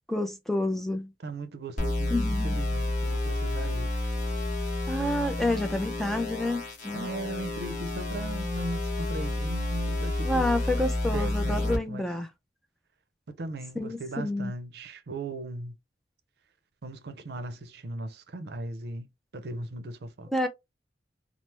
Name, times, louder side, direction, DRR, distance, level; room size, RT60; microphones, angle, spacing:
voice 1, 0.1-1.1 2.1-2.6 4.9-7.1 10.2-12.3 13.8-14.5 20.3-20.5, left 1 dB, ahead, 0.4 m, -29 dB
voice 2, 1.2-3.9 6.9-10.5 11.0-12.1 13.4-15.8 16.8-19.1 19.3-20.3, right 2 dB, 65° right, 0.5 m, -38 dB
sound 1, 1.8-11.8, left 2 dB, 45° left, 1.0 m, -30 dB
3.2 x 2.0 x 2.9 m
head